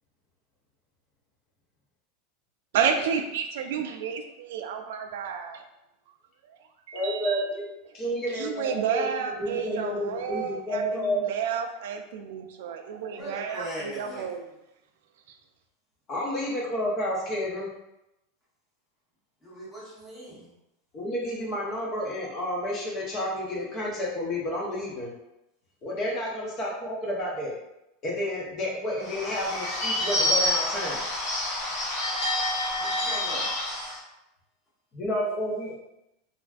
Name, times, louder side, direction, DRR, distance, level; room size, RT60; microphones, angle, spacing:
voice 1, 2.7-5.6 6.4-6.6 6.9-7.5 8.3-14.4, right 7 dB, 70° right, 5 dB, 0.3 m, -31 dB
voice 2, 6.9-7.7 7.9-9.1 9.4-11.3 16.1-17.7 20.9-25.1 25.8-27.6 28.0-31.0 34.9-35.7, equal, 25° left, -3 dB, 0.6 m, -30 dB
voice 3, 13.2-14.3 19.4-20.5 32.8-33.5, right 1 dB, 5° left, -8 dB, 0.9 m, -39 dB
Bird / Bell, 29.0-34.0, left 1 dB, 45° left, 1.0 m, -28 dB
3.3 x 2.5 x 2.3 m, 0.88 s
supercardioid pair, 175°, 0 cm